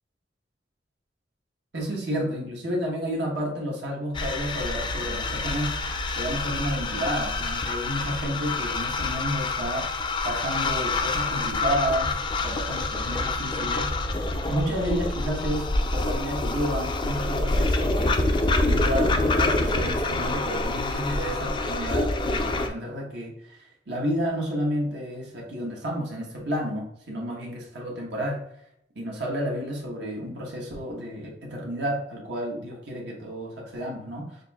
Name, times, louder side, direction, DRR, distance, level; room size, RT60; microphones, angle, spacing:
voice 1, 1.7-5.7 6.2-9.9 10.2-13.9 14.5-18.2 18.6-28.4 28.9-34.4, equal, 65° right, -2 dB, 1.1 m, -31 dB
sound 1, 4.1-22.7, left 2 dB, 25° left, 0.4 m, -26 dB
6.5 x 2.6 x 2.3 m, 0.76 s
head